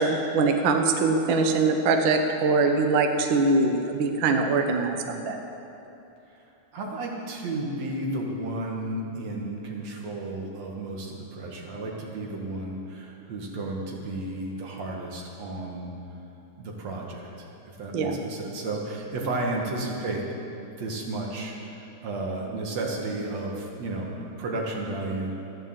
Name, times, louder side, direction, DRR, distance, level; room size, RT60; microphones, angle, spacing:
voice 1, 0.0-5.4 17.9-18.2, right 3 dB, 75° right, 4 dB, 1.1 m, -23 dB
voice 2, 6.7-15.9 16.6-17.5 17.8-25.4, right 2 dB, 55° right, -1 dB, 3.0 m, -33 dB
15.0 x 10.5 x 7.7 m, 2.9 s
omnidirectional pair, 3.7 m